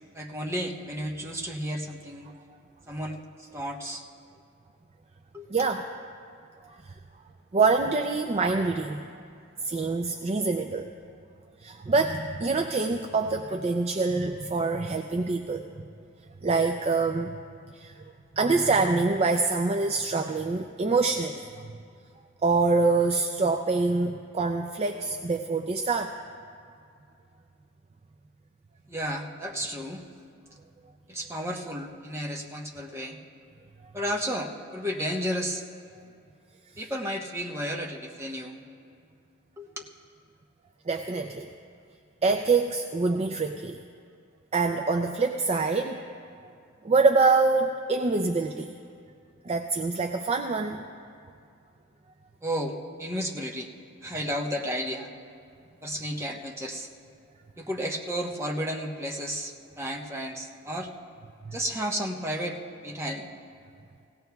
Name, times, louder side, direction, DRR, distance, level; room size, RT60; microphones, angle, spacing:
voice 1, 0.1-2.3 2.9-4.0 5.3-5.7 28.9-30.0 31.1-33.2 33.9-35.6 36.8-38.6 39.6-39.7 52.4-53.7 54.0-55.1 55.8-56.9 57.6-60.9 61.5-63.3, equal, 15° right, -1 dB, 1.0 m, -33 dB
voice 2, 5.5-5.8 6.6-6.9 7.5-9.0 9.6-10.9 11.6-15.6 16.4-17.4 17.7-17.9 18.4-21.5 22.4-26.2 40.9-41.5 42.2-43.8 44.5-46.0 46.8-48.7 49.4-50.9 61.5-61.6, right 3 dB, 30° right, 5 dB, 0.4 m, -25 dB
20.0 x 16.5 x 2.3 m, 2.4 s
head